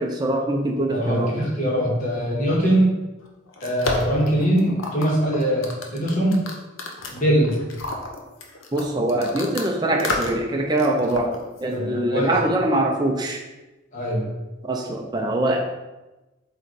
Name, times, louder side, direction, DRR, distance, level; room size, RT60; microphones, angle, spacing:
voice 1, 0.0-1.4 8.7-13.4 14.7-15.6, right 1 dB, 20° right, 1 dB, 0.5 m, -23 dB
voice 2, 0.9-3.0 3.6-6.5 7.1-7.6 11.7-12.3 13.9-14.3, right 1 dB, 35° left, -4 dB, 1.8 m, -22 dB
sound 1, 3.2-9.7 10.0-10.5 10.8-11.8, left 2 dB, 70° left, 0.9 m, -31 dB
8.0 x 3.2 x 4.2 m, 1.1 s
head